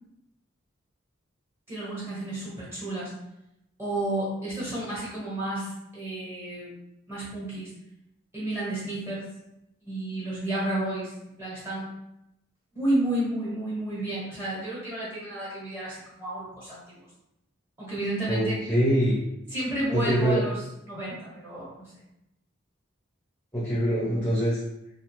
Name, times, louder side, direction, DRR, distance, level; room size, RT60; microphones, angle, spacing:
voice 1, 1.7-3.1 3.8-6.7 7.1-7.7 8.3-9.3 9.8-11.9 12.7-17.1 17.8-18.6 19.5-21.9, right 1 dB, 10° right, -8 dB, 1.1 m, -31 dB
voice 2, 18.3-19.2 19.9-20.4 23.5-24.6, equal, 10° left, -10 dB, 0.6 m, -24 dB
2.5 x 2.2 x 3.0 m, 0.85 s
head